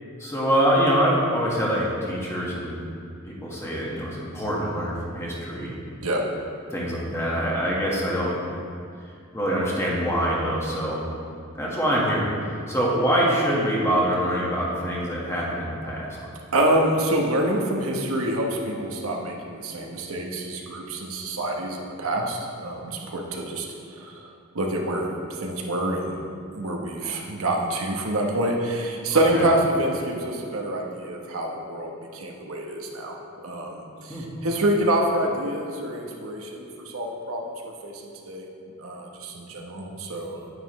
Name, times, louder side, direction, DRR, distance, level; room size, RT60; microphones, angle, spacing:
voice 1, 0.2-2.8 3.3-5.9 6.7-8.3 9.3-11.0 11.6-16.1 29.3-29.5 34.1-34.2, equal, 15° left, -5 dB, 1.6 m, -24 dB
voice 2, 16.5-23.7 23.9-24.3 24.5-25.1 25.4-26.2 26.5-33.2 33.4-37.5 37.8-38.5 38.8-40.5, right 1 dB, 80° right, 0 dB, 1.1 m, -26 dB
9.6 x 9.4 x 3.2 m, 2.4 s
head